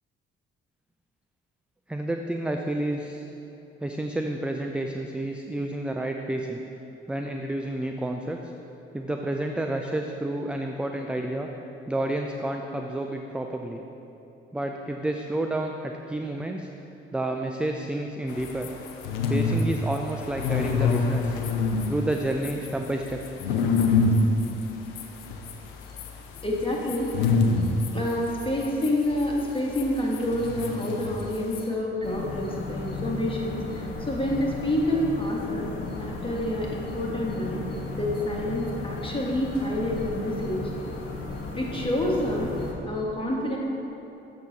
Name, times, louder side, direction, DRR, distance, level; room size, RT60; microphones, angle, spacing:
voice 1, 1.9-3.3 3.8-6.6 7.1-8.5 8.9-11.5 11.9-13.8 14.5-16.7 17.1-18.7 19.3-21.4 21.9-23.2, right 1 dB, 5° right, 3 dB, 0.3 m, -30 dB
sound 1, 18.3-31.6, left 4 dB, 75° left, 0.6 m, -27 dB
voice 2, 26.4-27.1 27.9-35.7 36.0-40.6 41.5-43.6, left 1 dB, 15° left, -2 dB, 1.6 m, -28 dB
sound 2, 32.0-42.7, left 3 dB, 50° left, 1.1 m, -35 dB
7.1 x 5.8 x 3.9 m, 2.9 s
figure-of-eight pair, 45°, 30 cm